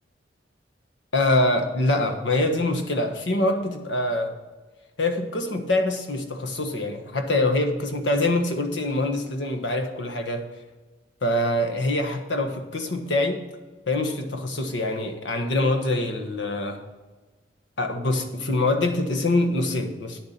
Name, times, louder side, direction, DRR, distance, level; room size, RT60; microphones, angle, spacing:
voice 1, 1.1-4.3 5.0-10.5 11.2-13.4 13.9-16.8 17.8-20.2, left 2 dB, 85° left, 5 dB, 1.4 m, -24 dB
10.0 x 7.0 x 5.8 m, 1.2 s
head